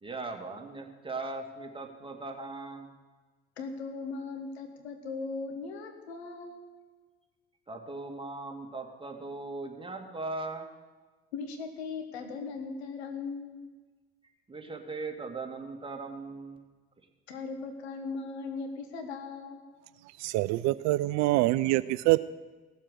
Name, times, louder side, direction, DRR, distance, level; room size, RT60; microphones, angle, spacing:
voice 1, 0.0-2.9 7.7-10.7 14.5-16.6, right 3 dB, 15° right, 2 dB, 2.3 m, -39 dB
voice 2, 3.6-6.6 11.3-13.6 17.3-19.6, left 4 dB, 80° left, 5 dB, 1.5 m, -38 dB
voice 3, 20.2-22.2, right 18 dB, 60° right, 17 dB, 0.4 m, -25 dB
17.0 x 7.4 x 6.5 m, 1.3 s
hypercardioid pair, 55°, 32 cm